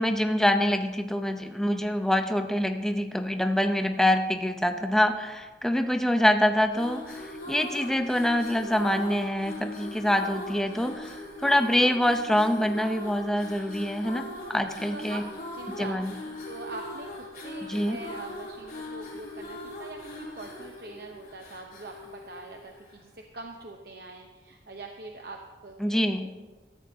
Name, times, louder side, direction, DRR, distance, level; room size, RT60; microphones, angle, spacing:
voice 1, 0.0-15.2 15.8-16.1 17.7-18.0 25.8-26.3, left 1 dB, 5° left, 6 dB, 0.7 m, -25 dB
sound 1, 6.6-23.1, left 1 dB, 50° left, 4.0 m, -40 dB
voice 2, 14.9-26.3, right 2 dB, 55° right, 2 dB, 0.9 m, -43 dB
18.5 x 13.5 x 2.8 m, 1.3 s
head